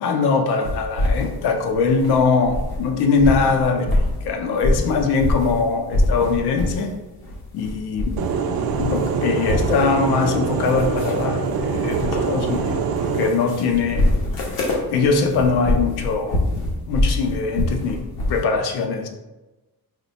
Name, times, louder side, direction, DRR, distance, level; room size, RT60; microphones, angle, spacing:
voice 1, 0.0-7.0 7.5-8.2 8.8-14.1 14.9-16.5 16.9-18.0 18.3-19.1, left 4 dB, 90° left, 5 dB, 0.6 m, -21 dB
sound 1, 0.6-2.9 3.1-5.6 5.9-6.9 7.2-8.4 8.7-18.4, left 1 dB, 70° left, 1.0 m, -25 dB
sound 2, 8.2-13.3, right 5 dB, 70° right, 0.5 m, -24 dB
3.2 x 2.2 x 4.0 m, 1.1 s
cardioid pair, 95°, 38 cm